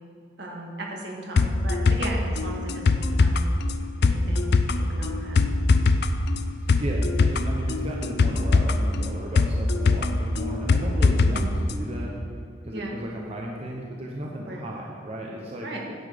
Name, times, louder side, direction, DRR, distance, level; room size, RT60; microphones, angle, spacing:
voice 1, 0.4-3.4 4.0-5.4 11.3-11.5 12.7-13.0 14.5-14.6 15.6-15.8, right 1 dB, 65° right, -1 dB, 1.8 m, -36 dB
sound 1, 1.4-11.4 11.7-11.8, left 3 dB, 60° left, 0.5 m, -22 dB
voice 2, 6.8-12.1 12.6-15.7, right 1 dB, 35° right, -2 dB, 0.9 m, -34 dB
10.0 x 7.2 x 5.1 m, 2.4 s
head